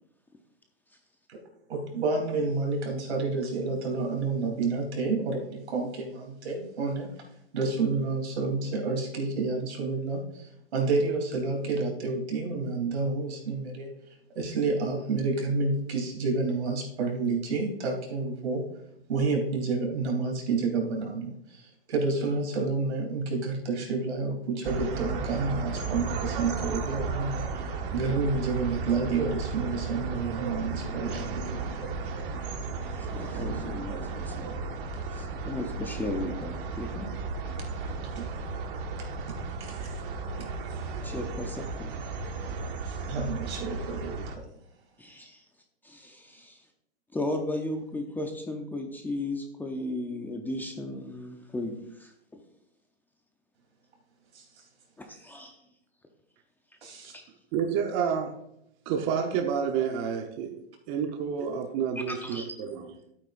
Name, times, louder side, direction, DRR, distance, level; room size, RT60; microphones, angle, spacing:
voice 1, 1.7-7.1 7.5-13.9 14.4-18.6 19.1-31.2 38.2-38.3 39.3-39.9 40.4-40.5 42.8-44.1 54.3-54.4 56.8-57.1 61.4-61.5, right 3 dB, 85° right, 3.3 m, -29 dB
sound 1, 24.6-44.4, right 4 dB, 55° right, 1.6 m, -34 dB
voice 2, 32.9-34.5 35.1-37.1 37.4-37.9 41.0-41.9 45.0-45.4 45.8-46.6 47.1-52.4 55.0-55.6 57.1-57.3 62.1-62.5, left 1 dB, 5° left, 0.7 m, -36 dB
voice 3, 57.5-58.4 58.9-60.6 60.9-62.9, right 7 dB, 35° right, 0.9 m, -29 dB
12.0 x 9.0 x 2.5 m
hypercardioid pair, 135°, 33 cm